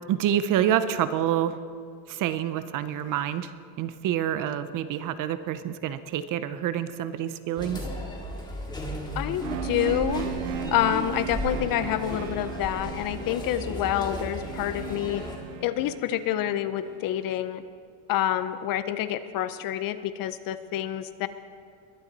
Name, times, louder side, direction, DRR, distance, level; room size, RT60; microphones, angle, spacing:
voice 1, 0.1-1.6 2.1-3.5 3.8-7.8, right 10 dB, 40° right, 13 dB, 0.6 m, -27 dB
sound 1, 7.6-15.4, left 1 dB, 10° left, 1.9 m, -35 dB
voice 2, 9.1-10.3 10.7-15.2 15.6-17.6 18.1-21.3, left 12 dB, 45° left, 12 dB, 0.6 m, -28 dB
sound 2, 9.4-17.2, right 13 dB, 75° right, 0.8 m, -38 dB
22.0 x 11.0 x 4.0 m, 2.2 s
cardioid pair, 145°, 49 cm